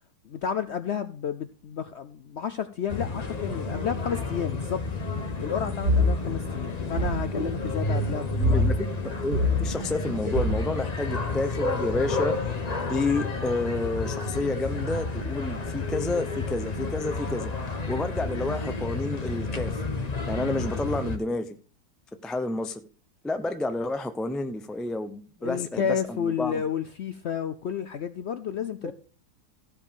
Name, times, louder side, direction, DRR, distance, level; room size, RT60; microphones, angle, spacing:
voice 1, 0.2-4.9 5.4-8.7 25.4-28.9, left 8 dB, 65° left, 0.7 m, -31 dB
sound 1, 2.9-21.2, left 3 dB, 30° left, 1.0 m, -30 dB
sound 2, 5.8-6.1 7.0-7.2 8.4-8.7 9.3-9.6 10.3-10.6, left 1 dB, 45° right, 1.7 m, -23 dB
voice 2, 8.4-8.8 9.2-12.3 12.9-17.5 17.9-19.8 20.3-21.6 22.2-22.8 23.2-26.6 28.8-28.9, left 2 dB, ahead, 0.3 m, -30 dB
14.5 x 5.2 x 5.3 m
omnidirectional pair, 1.7 m